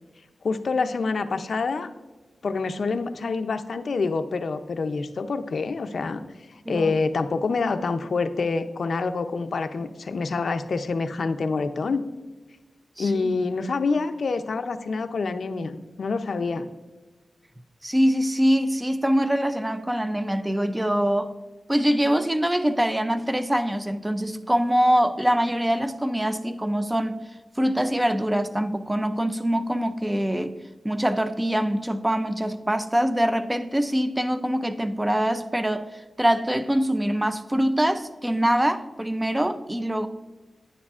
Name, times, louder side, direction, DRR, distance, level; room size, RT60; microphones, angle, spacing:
voice 1, 0.4-1.9 2.4-6.2 6.5-12.0 13.0-16.7, left 4 dB, 60° left, 0.5 m, -26 dB
voice 2, 13.0-13.4 17.8-21.3 21.7-27.2 27.6-30.5 30.8-40.1, equal, 10° right, 0.4 m, -24 dB
10.0 x 9.6 x 2.4 m
wide cardioid pair, 155°, 0 cm